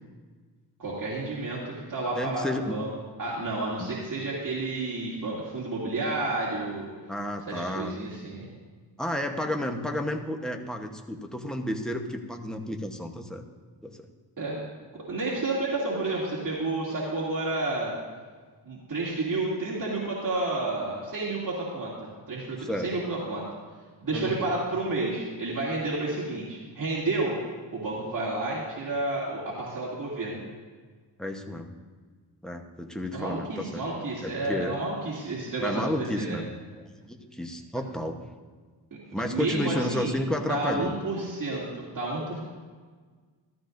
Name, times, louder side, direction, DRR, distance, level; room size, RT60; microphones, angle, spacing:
voice 1, 0.8-2.9 3.2-6.9 7.5-8.5 14.4-14.6 14.9-17.9 18.6-23.4 24.0-27.3 27.7-30.4 33.1-36.4 39.2-40.1 40.5-42.4, right 2 dB, 45° right, -7 dB, 2.4 m, -30 dB
voice 2, 2.1-2.7 3.8-3.9 7.1-8.0 9.0-13.4 13.8-14.0 22.6-22.9 24.1-24.4 31.2-31.7 32.4-33.8 34.2-34.8 35.6-38.2 39.1-40.9, left 1 dB, ahead, 3 dB, 0.9 m, -32 dB
14.0 x 13.0 x 2.6 m, 1.5 s
wide cardioid pair, 100°, 43 cm